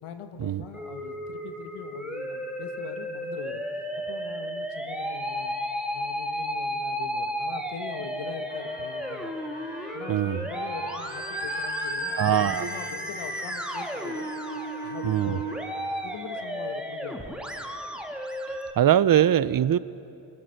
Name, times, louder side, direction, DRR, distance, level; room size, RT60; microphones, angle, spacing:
voice 1, 0.0-3.6 4.0-5.5 5.9-9.4 9.9-14.3 14.8-15.7 16.0-17.5, left 7 dB, 80° left, 7 dB, 1.5 m, -41 dB
Musical instrument, 0.7-18.7, equal, ahead, 2.0 m, -33 dB
Trumpet, 8.5-16.2, equal, 20° left, 4.8 m, -43 dB
voice 2, 10.1-10.4 12.2-12.7 15.0-15.4 18.5-19.8, right 11 dB, 45° right, 17 dB, 0.6 m, -22 dB
21.0 x 18.5 x 6.5 m, 2.6 s
cardioid pair, 75°, 50 cm